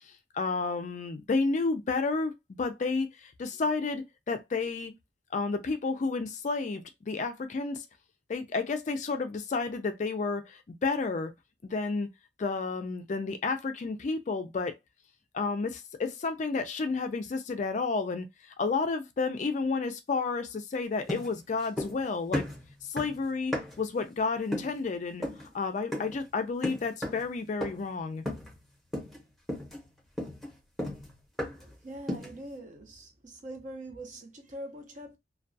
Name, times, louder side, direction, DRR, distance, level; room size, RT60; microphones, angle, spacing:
voice 1, 0.3-4.9 5.3-7.8 8.3-11.3 11.6-12.1 12.4-14.8 15.3-22.5 22.8-25.2 25.5-28.2, left 4 dB, 40° left, 0.3 m, -31 dB
sound 1, 21.1-22.1 22.3-23.9 24.5-24.8 25.2-25.5 25.9-26.2 26.6-27.3 27.6-27.9 28.3-28.6 28.9-29.2 29.5-31.7 32.1-32.4, left 1 dB, ahead, 0.8 m, -35 dB
voice 2, 31.6-35.2, right 1 dB, 40° right, 0.7 m, -43 dB
2.2 x 2.2 x 2.5 m
head